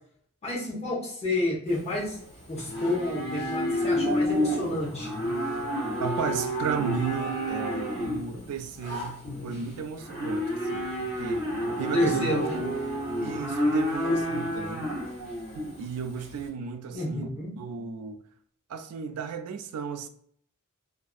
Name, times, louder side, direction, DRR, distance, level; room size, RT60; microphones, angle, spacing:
voice 1, 0.4-2.2 2.5-5.1 11.9-12.6 16.9-17.5, left 2 dB, 30° left, 0.9 m, -29 dB
Livestock farm animals working animals, 1.7-16.4, equal, 50° left, 1.1 m, -30 dB
voice 2, 6.0-11.4 11.8-12.7 13.2-15.0 15.8-17.3 17.6-18.2 18.7-20.1, right 6 dB, 85° right, 0.3 m, -34 dB
2.5 x 2.4 x 2.4 m
head